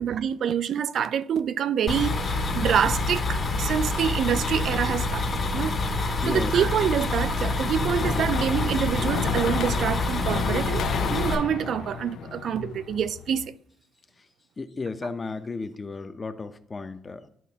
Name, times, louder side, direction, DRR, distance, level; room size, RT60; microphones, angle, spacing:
voice 1, 0.0-5.8 6.3-13.6, right 8 dB, 65° right, 0.3 m, -26 dB
sound 1, 1.9-11.3, left 2 dB, 45° left, 1.6 m, -27 dB
voice 2, 6.2-6.5 14.6-17.3, left 4 dB, 30° left, 0.6 m, -34 dB
sound 2, 7.3-13.5, left 7 dB, 80° left, 0.5 m, -32 dB
11.0 x 4.1 x 2.8 m
cardioid pair, 90°, 0 cm